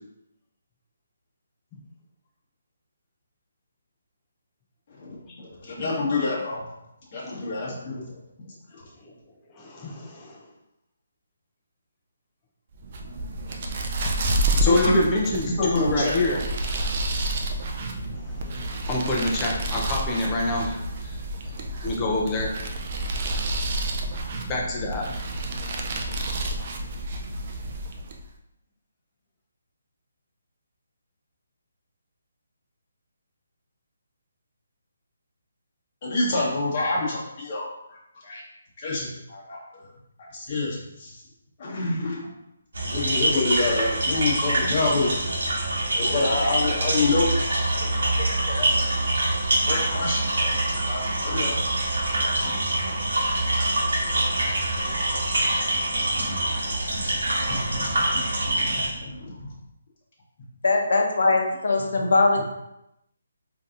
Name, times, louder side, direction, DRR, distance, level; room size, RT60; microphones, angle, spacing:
voice 1, 5.0-6.6 7.1-8.2 8.7-8.8 14.6-15.0 15.5-16.4 36.0-37.7 38.1-38.4 38.8-39.6 40.3-41.1 41.6-42.3 42.8-45.3 45.9-47.6 48.2-48.8 49.6-51.6 52.2-52.5 56.1-59.5, left 3 dB, 35° left, -5 dB, 1.1 m, -28 dB
voice 2, 9.5-10.4 14.6-16.4 18.2-21.2 21.8-22.6 24.5-25.1, left 2 dB, 15° left, -2 dB, 0.5 m, -26 dB
sound 1, 12.8-28.3, right 1 dB, 40° right, 0.4 m, -29 dB
sound 2, 42.7-58.9, right 1 dB, 75° right, 1.0 m, -25 dB
voice 3, 60.6-62.4, left 3 dB, 70° left, 2 dB, 0.7 m, -21 dB
3.8 x 2.7 x 2.5 m, 0.84 s
hypercardioid pair, 165°, 0 cm